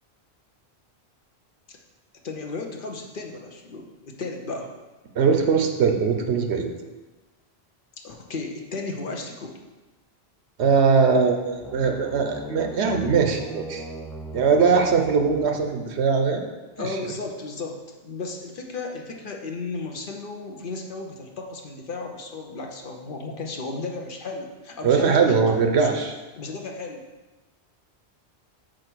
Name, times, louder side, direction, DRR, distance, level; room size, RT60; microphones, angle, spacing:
voice 1, 2.2-4.7 8.0-9.5 16.8-25.9 26.4-27.0, left 3 dB, 55° left, 2 dB, 0.9 m, -34 dB
voice 2, 5.2-6.7 10.6-13.9 14.3-16.4 16.8-16.9 24.8-26.1, right 5 dB, 85° right, 4 dB, 1.0 m, -21 dB
sound 1, 11.4-16.2, right 1 dB, ahead, 0.4 m, -39 dB
5.1 x 4.5 x 6.1 m, 1.2 s
omnidirectional pair, 1.1 m